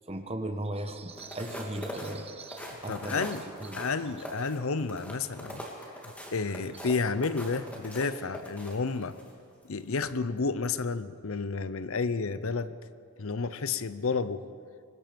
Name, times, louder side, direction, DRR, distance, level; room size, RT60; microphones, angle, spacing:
voice 1, 0.1-3.3 3.6-3.8, right 1 dB, 25° right, 7 dB, 1.2 m, -37 dB
sound 1, 1.1-9.3 9.8-10.0, equal, 5° left, 2.5 m, -42 dB
voice 2, 2.6-3.4 3.7-5.7 6.0-9.3 9.6-12.7 13.2-14.4, left 4 dB, 70° left, 14 dB, 0.7 m, -31 dB
24.0 x 20.5 x 5.2 m, 2.3 s
head